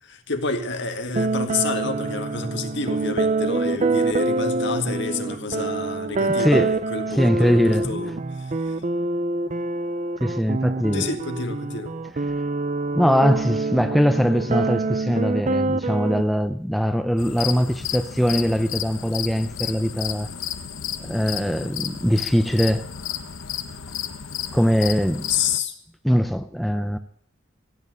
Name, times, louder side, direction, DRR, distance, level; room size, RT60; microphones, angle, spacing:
voice 1, 0.0-8.8 10.9-12.0 25.3-25.7, left 4 dB, 60° left, 2.0 m, -29 dB
sound 1, 1.1-16.2, right 3 dB, 40° right, 0.6 m, -25 dB
voice 2, 6.3-6.8 7.1-8.0 10.2-11.0 12.9-20.3 21.0-22.9 24.5-25.3 26.0-27.0, equal, ahead, 0.6 m, -21 dB
sound 2, 17.2-25.6, left 9 dB, 80° left, 1.0 m, -32 dB
16.0 x 9.2 x 9.3 m
head